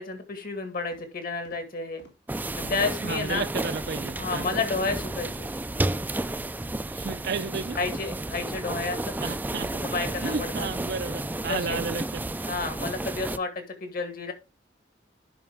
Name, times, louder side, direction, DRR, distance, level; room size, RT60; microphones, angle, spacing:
voice 1, 0.0-2.0 2.6-3.4 4.2-5.5 7.8-9.4 9.7-10.7 11.5-11.8 12.5-14.3, left 3 dB, 55° left, 1.9 m, -31 dB
sound 1, 0.9-1.1 1.4-1.6 2.0-2.2 2.5-2.7 3.0-3.3 3.6-3.7 4.1-4.3 4.7-4.9 5.2-5.4 5.8-6.0 6.4-6.5 7.0-7.2 7.5-7.7 8.0-8.2 8.5-8.7 9.1-9.2 9.6-9.7 10.1-10.3 10.6-10.8 11.2-11.3 11.7-11.8 12.2-12.4 12.8-12.9, left 1 dB, 75° left, 2.7 m, -54 dB
sound 2, 2.3-13.4, right 2 dB, 10° right, 0.3 m, -32 dB
voice 2, 3.0-4.5 6.8-7.8 9.2-9.7 10.2-12.0 12.4-12.5, right 4 dB, 60° right, 0.5 m, -32 dB
11.0 x 5.3 x 3.5 m
head